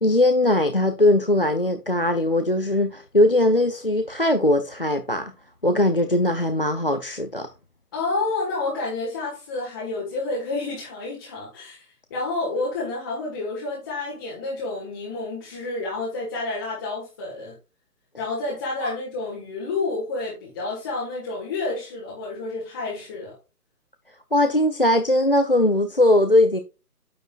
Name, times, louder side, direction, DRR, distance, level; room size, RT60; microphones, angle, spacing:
voice 1, 0.0-5.3 5.6-7.5 24.3-26.6, left 1 dB, 40° left, 0.5 m, -20 dB
voice 2, 7.9-11.8 12.1-17.5 18.2-23.3, left 3 dB, 15° left, 1.4 m, -29 dB
9.1 x 8.7 x 2.4 m
figure-of-eight pair, 150°, 46 cm